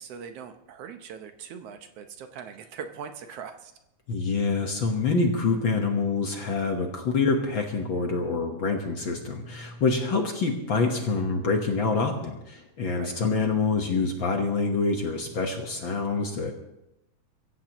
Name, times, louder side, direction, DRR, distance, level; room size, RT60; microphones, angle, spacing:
voice 1, 0.0-3.7 12.9-13.1, right 7 dB, 70° right, 7 dB, 1.6 m, -41 dB
voice 2, 4.1-16.5, left 4 dB, 55° left, 3 dB, 1.5 m, -26 dB
23.5 x 15.0 x 3.0 m, 0.88 s
omnidirectional pair, 3.5 m